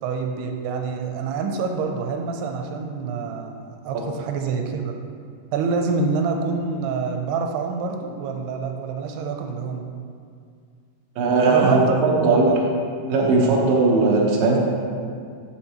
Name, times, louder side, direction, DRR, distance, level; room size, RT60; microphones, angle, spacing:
voice 1, 0.0-5.0 5.5-9.9 11.4-12.6, right 4 dB, 90° right, 3 dB, 2.6 m, -26 dB
voice 2, 11.2-12.5 13.1-14.6, right 3 dB, 65° right, -3 dB, 2.0 m, -18 dB
8.0 x 7.7 x 3.0 m, 2.2 s
omnidirectional pair, 4.6 m